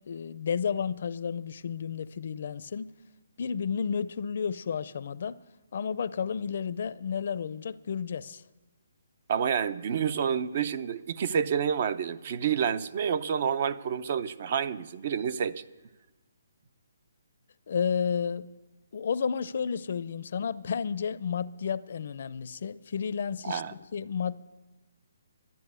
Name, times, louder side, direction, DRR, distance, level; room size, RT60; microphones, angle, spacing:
voice 1, 0.1-2.9 3.4-5.4 5.7-8.4 17.7-18.5 18.9-24.4, left 6 dB, 55° left, 0.5 m, -32 dB
voice 2, 9.3-15.6 23.4-23.7, right 7 dB, 45° right, 0.6 m, -29 dB
12.0 x 11.0 x 9.5 m
hypercardioid pair, 160°, 0 cm